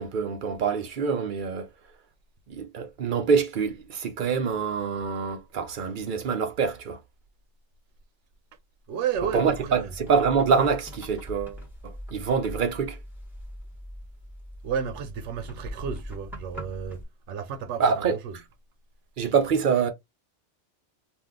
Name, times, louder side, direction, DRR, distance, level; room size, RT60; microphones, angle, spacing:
voice 1, 0.0-1.7 2.5-7.0 9.2-11.6 12.1-13.0 17.8-18.2 19.2-19.9, right 6 dB, 55° right, 0.6 m, -25 dB
voice 2, 8.9-9.9 14.6-18.4, right 7 dB, 90° right, 0.9 m, -32 dB
sound 1, 9.1-17.0, equal, ahead, 1.0 m, -41 dB
2.6 x 2.2 x 3.5 m
omnidirectional pair, 1.2 m